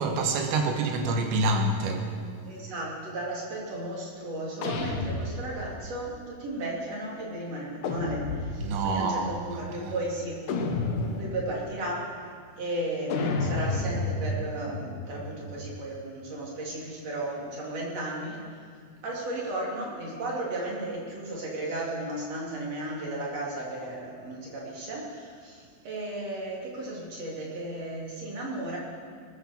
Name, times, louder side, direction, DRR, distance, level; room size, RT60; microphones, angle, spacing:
voice 1, 0.0-2.2 8.6-9.5 9.8-9.9, right 2 dB, 75° right, 4 dB, 3.3 m, -27 dB
voice 2, 2.4-10.4 11.1-12.0 12.6-18.7 19.0-28.8, right 1 dB, 40° right, -4 dB, 3.6 m, -35 dB
sound 1, 4.6-5.9 7.8-8.9 10.5-11.5 13.1-15.8, left 3 dB, 70° left, 1.9 m, -31 dB
20.5 x 8.3 x 7.2 m, 2.1 s
omnidirectional pair, 5.3 m